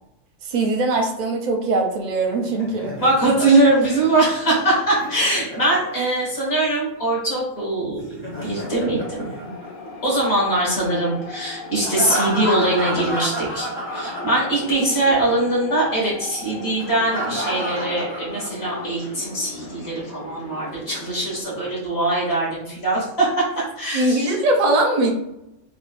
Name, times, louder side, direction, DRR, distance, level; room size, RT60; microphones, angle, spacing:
voice 1, 0.5-3.0 23.9-25.1, right 2 dB, 50° right, 1 dB, 0.6 m, -21 dB
Laughter, 2.2-6.3 8.0-10.1 11.8-14.9 15.2-15.3 16.8-18.9, right 1 dB, 15° left, 0.5 m, -30 dB
voice 2, 3.0-9.5 10.0-24.3, right 2 dB, 55° left, -5 dB, 1.6 m, -22 dB
sound 1, 8.3-21.4, left 3 dB, 70° left, 1.1 m, -37 dB
3.6 x 2.4 x 2.4 m, 0.89 s
omnidirectional pair, 1.3 m